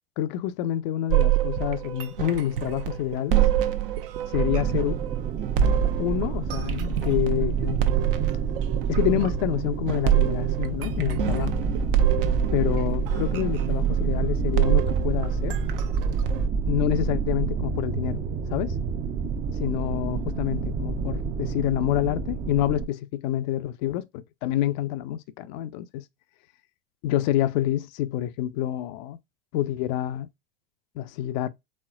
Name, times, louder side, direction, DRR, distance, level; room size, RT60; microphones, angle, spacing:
voice 1, 0.2-3.4 4.3-5.0 6.0-7.8 8.9-11.5 12.5-15.6 16.7-18.2 18.5-18.8 19.6-26.0 27.0-29.2 29.5-30.3 31.0-31.5, left 12 dB, 50° left, 0.5 m, -27 dB
sound 1, 1.1-16.5, right 11 dB, 65° right, 0.9 m, -26 dB
sound 2, 4.3-22.9, right 5 dB, 25° right, 0.6 m, -28 dB
4.2 x 3.6 x 2.3 m
hypercardioid pair, 95°, 30 cm